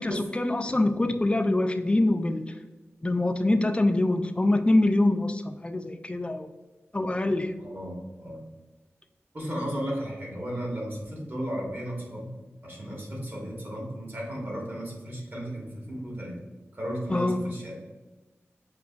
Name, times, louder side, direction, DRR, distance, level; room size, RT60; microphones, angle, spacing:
voice 1, 0.0-2.5 3.0-6.5 6.9-7.5 17.1-17.4, left 2 dB, 20° left, 7 dB, 0.3 m, -24 dB
voice 2, 7.6-8.4 9.3-12.4 12.6-16.3 16.7-17.8, equal, 45° right, -3 dB, 1.4 m, -34 dB
6.0 x 2.9 x 2.4 m, 1.2 s
wide cardioid pair, 70°, 5 cm